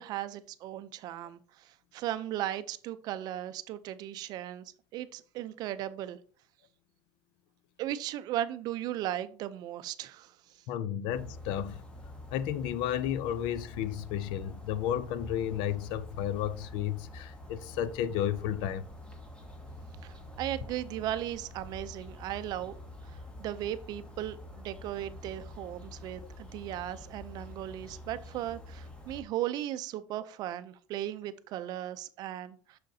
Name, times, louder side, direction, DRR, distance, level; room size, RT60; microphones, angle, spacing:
voice 1, 0.0-1.4 1.9-6.2 7.8-10.3 20.0-22.7 23.4-32.8, right 12 dB, 50° right, 0.5 m, -36 dB
voice 2, 10.7-11.8 12.3-18.8, left 10 dB, 65° left, 0.5 m, -32 dB
sound 1, 11.1-29.2, left 1 dB, 10° left, 1.2 m, -47 dB
6.5 x 6.4 x 2.7 m
cardioid pair, 150°, 9 cm